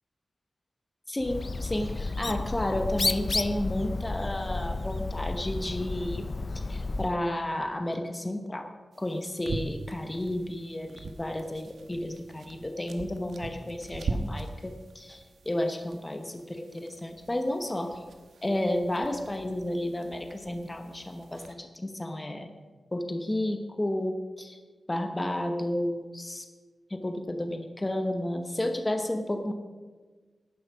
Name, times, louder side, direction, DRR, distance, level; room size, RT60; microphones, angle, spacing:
voice 1, 1.1-6.3 6.7-8.7 9.0-18.0 18.4-22.5 22.9-24.6 24.9-26.5 26.9-29.5, left 1 dB, 20° left, 6 dB, 0.9 m, -32 dB
Bird, 1.2-7.2, left 3 dB, 35° left, 0.4 m, -32 dB
sound 1, 8.9-21.5, right 3 dB, 90° right, 1.1 m, -41 dB
11.0 x 9.7 x 6.0 m, 1.4 s
wide cardioid pair, 135°, 0 cm